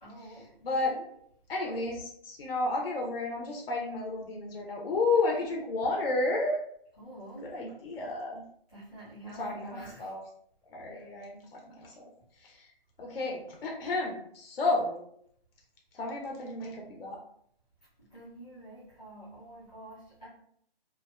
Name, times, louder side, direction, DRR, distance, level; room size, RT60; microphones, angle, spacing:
voice 1, 0.0-0.6 0.9-1.0 7.0-7.5 8.7-10.1 10.9-11.0 18.0-20.3, right 1 dB, 10° left, -15 dB, 0.5 m, -47 dB
voice 2, 0.6-0.9 1.5-6.6 7.5-8.4 9.2-10.2 10.7-12.0 12.4-12.7 13.0-15.1 15.9-17.2, left 3 dB, 70° left, -1 dB, 0.6 m, -32 dB
2.5 x 2.1 x 2.3 m, 0.68 s
hypercardioid pair, 165°, 30 cm